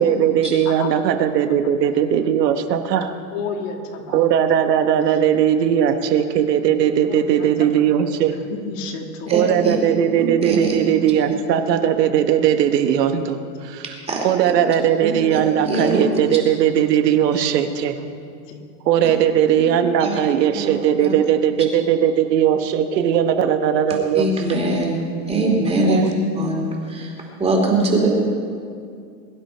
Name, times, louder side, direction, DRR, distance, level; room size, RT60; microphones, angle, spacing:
voice 1, 0.0-3.1 4.1-8.4 9.3-13.8 14.2-17.9 18.9-24.6 25.9-26.1, right 9 dB, 80° right, 7 dB, 1.4 m, -18 dB
voice 2, 0.7-1.0 1.5-1.6 1.9-2.0 3.3-4.4 5.1-5.2 7.1-7.7 8.3-9.7 13.7-13.8 17.8-18.1 18.5-18.6 20.9-21.0, left 5 dB, 50° left, 3 dB, 2.0 m, -33 dB
voice 3, 9.3-9.8 10.2-10.8 14.1-14.3 15.0-16.0 19.6-19.7 20.0-20.2 20.5-21.2 24.1-26.0 26.3-28.1, right 2 dB, 10° right, 0 dB, 2.6 m, -22 dB
22.0 x 11.0 x 4.5 m, 2.3 s
supercardioid pair, 150°, 49 cm